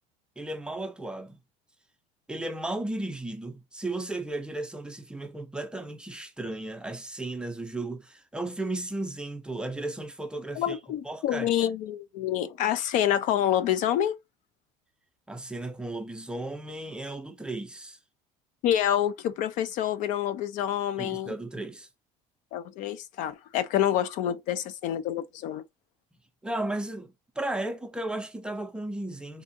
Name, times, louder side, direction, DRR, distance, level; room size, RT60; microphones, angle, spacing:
voice 1, 0.4-1.4 2.3-10.8 11.0-11.5 15.3-18.0 21.0-21.9 26.4-29.4, right 2 dB, 5° right, 0.5 m, -35 dB
voice 2, 10.6-14.1 18.6-21.3 22.5-25.6, left 11 dB, 60° left, 0.4 m, -27 dB
3.5 x 2.7 x 2.6 m
cardioid pair, 150°, 15 cm